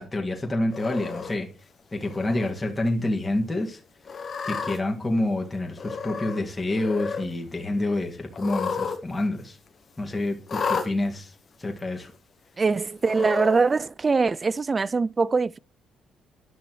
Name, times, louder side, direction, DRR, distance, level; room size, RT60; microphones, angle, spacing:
voice 1, 0.0-1.5 1.9-3.8 4.4-9.6 10.0-12.1, left 1 dB, 20° left, 2.4 m, -28 dB
Cat, 0.7-1.3 2.0-2.5 2.9-3.0 4.0-4.8 5.8-6.4 6.7-7.3 8.3-9.0 9.3-9.4 10.5-10.9 11.8-11.9 13.0-13.6, left 5 dB, 45° left, 1.7 m, -31 dB
voice 2, 12.6-15.6, right 4 dB, 30° right, 0.3 m, -23 dB
11.5 x 6.1 x 3.1 m
cardioid pair, 90°, 0 cm